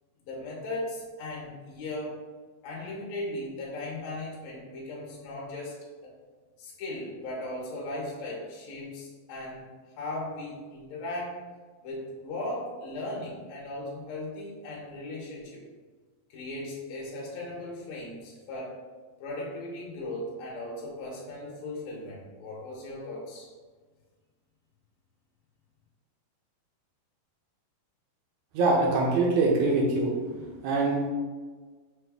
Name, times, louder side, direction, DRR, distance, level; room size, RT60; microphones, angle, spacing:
voice 1, 0.3-2.1 2.6-5.8 6.0-6.1 6.6-9.7 10.0-11.4 11.8-15.6 16.3-18.8 19.2-23.5, left 1 dB, 75° left, -3 dB, 1.7 m, -37 dB
voice 2, 28.5-30.1 30.6-31.0, right 3 dB, 75° right, -2 dB, 1.7 m, -23 dB
6.0 x 2.3 x 3.3 m, 1.4 s
omnidirectional pair, 3.9 m